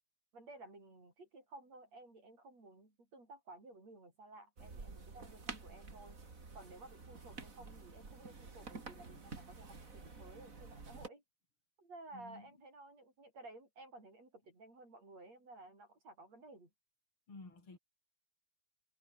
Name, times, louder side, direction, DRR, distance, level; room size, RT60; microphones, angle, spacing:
voice 1, 0.3-6.2 6.5-11.2 11.8-16.7, right 2 dB, 45° right, 9.1 m, -55 dB
sound 1, 4.6-11.1, right 4 dB, 25° right, 2.8 m, -50 dB
voice 2, 12.1-12.6 17.3-17.8, left 3 dB, 35° left, 7.1 m, -53 dB
omnidirectional pair, 4.3 m